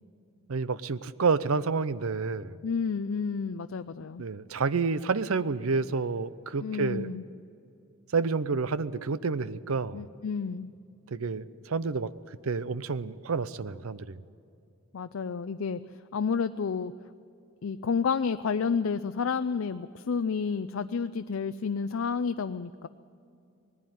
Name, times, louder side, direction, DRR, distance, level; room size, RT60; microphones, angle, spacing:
voice 1, 0.5-2.6 4.2-7.1 8.1-10.1 11.1-12.1 12.4-14.2, right 4 dB, 75° right, 16 dB, 0.6 m, -29 dB
voice 2, 2.6-4.2 6.6-7.2 9.9-10.7 14.9-15.8 16.1-16.9 17.6-22.9, left 5 dB, 70° left, 10 dB, 0.5 m, -30 dB
19.0 x 15.0 x 9.2 m, 2.5 s
head